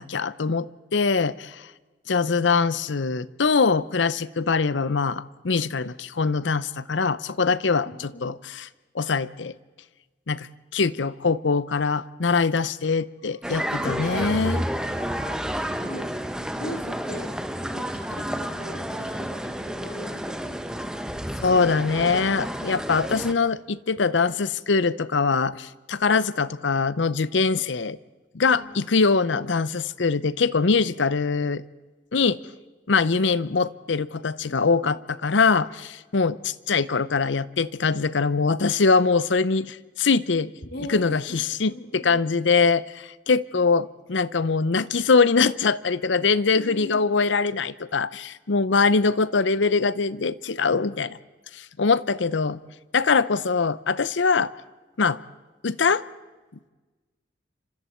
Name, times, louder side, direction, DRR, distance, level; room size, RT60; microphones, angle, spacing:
voice 1, 0.0-1.7 2.1-8.7 8.9-9.6 10.3-10.5 10.7-14.6 15.0-15.4 21.4-28.0 28.3-31.6 32.1-32.4 32.9-40.5 40.9-51.2 51.5-52.6 52.9-54.5 55.0-55.2 55.6-56.0, left 4 dB, 75° left, 17 dB, 0.7 m, -23 dB
voice 2, 7.8-8.2 15.8-16.1 16.4-17.3 17.7-20.9 28.4-28.8 40.7-41.0 41.3-41.4 41.7-42.2 46.5-47.1, left 1 dB, 55° left, 3 dB, 2.8 m, -40 dB
sound 1, 13.4-23.3, equal, 5° right, 1.1 m, -30 dB
29.0 x 26.0 x 4.4 m, 1.3 s
head